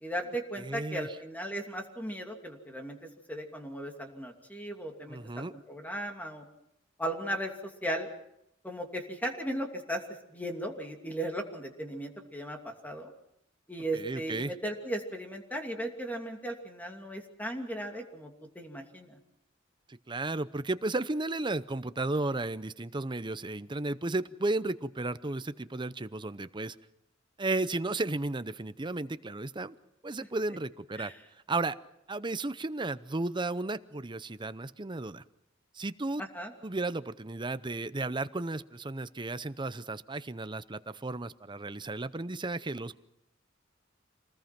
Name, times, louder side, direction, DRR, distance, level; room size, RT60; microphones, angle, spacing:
voice 1, 0.0-6.4 7.0-8.1 8.6-10.0 10.3-13.1 13.7-19.2 31.0-31.2 36.2-36.5, right 1 dB, 10° left, 3 dB, 2.6 m, -37 dB
voice 2, 0.6-1.1 5.1-5.5 13.9-14.5 19.9-26.8 27.4-29.7 30.0-31.1 31.5-31.8 32.1-35.2 35.7-36.2 36.6-43.0, right 2 dB, 25° right, 14 dB, 0.7 m, -34 dB
26.5 x 20.0 x 6.0 m, 0.81 s
head